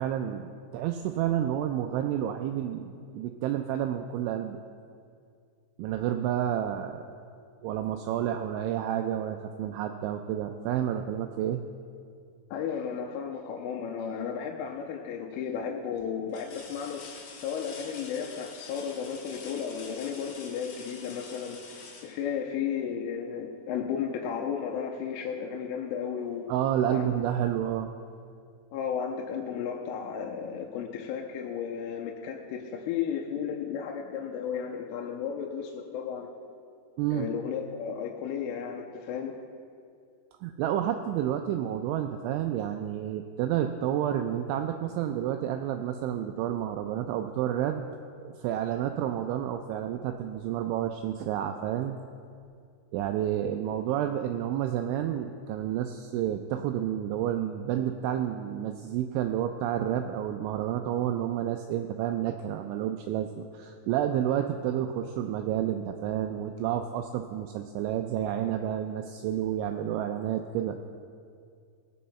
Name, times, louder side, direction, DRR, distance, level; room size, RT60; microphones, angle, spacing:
voice 1, 0.0-4.6 5.8-7.1 7.6-11.6 26.5-27.9 37.0-37.3 40.4-47.9 48.2-52.0 52.9-70.8, right 10 dB, 85° right, 6 dB, 2.7 m, -30 dB
voice 2, 12.5-21.8 22.0-26.5 26.9-27.1 28.7-36.3 37.1-39.3, left 7 dB, 85° left, 2 dB, 3.2 m, -34 dB
sound 1, 14.5-15.0 15.6-15.7 16.3-23.0 24.8-24.9 25.4-26.4 27.7-27.8, left 4 dB, 70° left, 1.9 m, -47 dB
19.0 x 8.6 x 4.2 m, 2.3 s
omnidirectional pair, 5.9 m